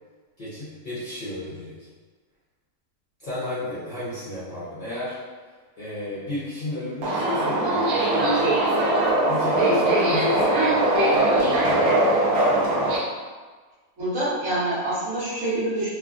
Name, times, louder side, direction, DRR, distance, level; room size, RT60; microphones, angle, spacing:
voice 1, 0.4-1.9 3.2-5.2 5.8-8.5 9.2-10.8, left 1 dB, 40° left, -12 dB, 0.8 m, -33 dB
Subway metro underground, 7.0-13.0, right 1 dB, 80° right, 1.1 m, -21 dB
voice 2, 14.0-15.9, right 1 dB, 60° right, -11 dB, 1.6 m, -26 dB
3.3 x 2.2 x 2.4 m, 1.4 s
omnidirectional pair, 1.5 m